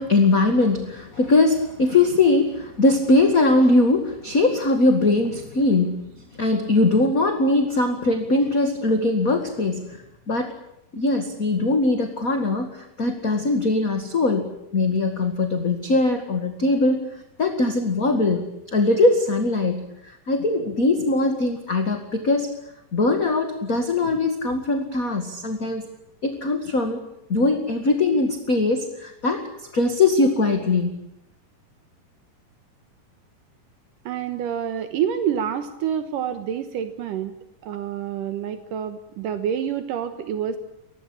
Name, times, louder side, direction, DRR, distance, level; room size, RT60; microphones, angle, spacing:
voice 1, 0.0-6.0 6.3-10.0 10.3-10.5 10.9-17.0 17.4-19.8 20.3-22.5 22.9-25.9 26.2-27.0 27.3-29.4 29.7-30.9, left 2 dB, 30° left, 5 dB, 2.0 m, -21 dB
voice 2, 34.1-37.3 37.6-40.6, right 9 dB, 80° right, 9 dB, 2.8 m, -27 dB
24.5 x 19.0 x 8.8 m, 0.84 s
omnidirectional pair, 3.8 m